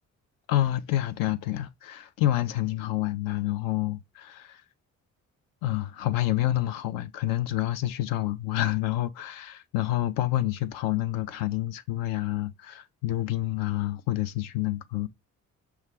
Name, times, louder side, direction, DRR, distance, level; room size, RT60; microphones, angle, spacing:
voice 1, 0.5-4.6 5.6-15.1, left 14 dB, 55° left, 0.5 m, -28 dB
6.2 x 2.3 x 3.4 m
figure-of-eight pair, 40°, 41 cm